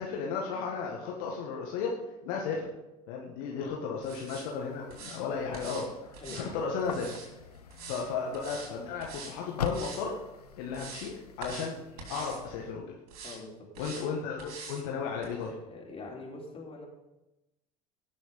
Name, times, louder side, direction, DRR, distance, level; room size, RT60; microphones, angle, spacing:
voice 1, 0.0-1.9 2.2-2.7 3.1-7.1 7.8-10.2 10.6-12.8 13.8-15.5, left 5 dB, 65° left, -1 dB, 1.7 m, -34 dB
sound 1, 4.0-4.5 4.9-5.2 5.5-5.9 6.1-7.3 7.7-8.1 8.3-8.7 9.0-9.4 9.6-10.0 10.5-11.1 11.4-11.7 12.0-12.4 13.1-13.4 13.7-14.1 14.4-14.8 15.2-15.3, right 4 dB, 70° right, 3.0 m, -44 dB
sound 2, 4.2-12.7, left 7 dB, 85° left, 0.7 m, -44 dB
voice 2, 6.2-6.5 13.2-13.5 15.6-16.9, left 3 dB, 30° left, -2 dB, 4.1 m, -44 dB
17.5 x 6.3 x 5.4 m, 0.99 s
figure-of-eight pair, 65°, 19 cm